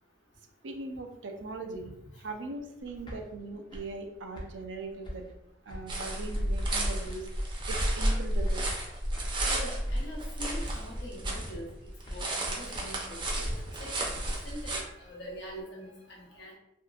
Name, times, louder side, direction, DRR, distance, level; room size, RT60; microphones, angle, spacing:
voice 1, 0.6-2.0 2.2-5.3 5.7-7.3 7.7-8.7, right 3 dB, 85° right, 4 dB, 0.5 m, -40 dB
sound 1, 2.8-6.1 6.3-7.5 7.8-9.6 9.8-10.3 10.6-11.1 11.3-11.8 12.0-13.1 13.4-15.6, equal, 25° left, 0.5 m, -45 dB
sound 2, 5.9-11.5 11.9-14.8, right 1 dB, 25° right, 0.5 m, -31 dB
voice 2, 9.4-11.7 12.1-16.5, equal, 80° left, -3 dB, 0.8 m, -43 dB
2.7 x 2.5 x 2.3 m, 0.84 s
head